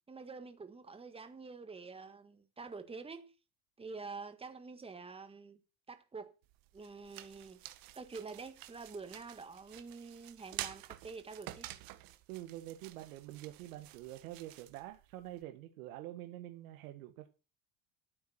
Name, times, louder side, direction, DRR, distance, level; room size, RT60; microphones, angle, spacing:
voice 1, 0.1-3.3 3.8-5.6 5.9-6.3 6.7-7.6 7.9-11.7, right 4 dB, 15° right, 1.7 m, -47 dB
sound 1, 6.4-15.4, right 15 dB, 55° right, 1.7 m, -50 dB
voice 2, 12.3-17.3, right 15 dB, 85° right, 1.8 m, -46 dB
12.0 x 8.9 x 6.0 m
supercardioid pair, 120°, 41 cm